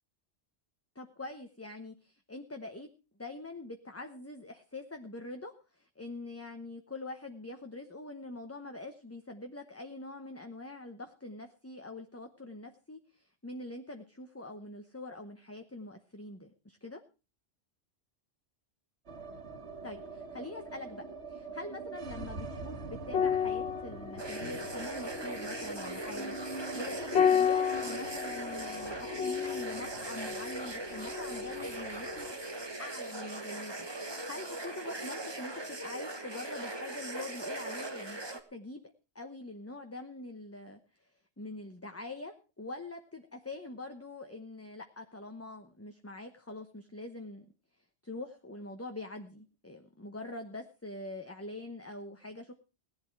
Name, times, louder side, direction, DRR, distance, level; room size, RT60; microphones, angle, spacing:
voice 1, 0.9-2.9 3.2-17.0 19.8-21.0 21.3-26.5 26.7-32.5 32.8-33.9 34.3-38.2 38.5-40.8 41.4-47.4 48.0-52.5, left 2 dB, 15° left, 5 dB, 0.9 m, -44 dB
sound 1, 19.1-35.2 35.4-35.5 35.8-36.5, right 3 dB, 80° right, 1.7 m, -45 dB
sound 2, 23.1-31.8 32.1-32.3, left 8 dB, 70° left, 1.3 m, -33 dB
sound 3, 24.2-38.4, right 2 dB, 25° right, 1.4 m, -40 dB
17.5 x 11.0 x 4.6 m, 0.33 s
omnidirectional pair, 1.1 m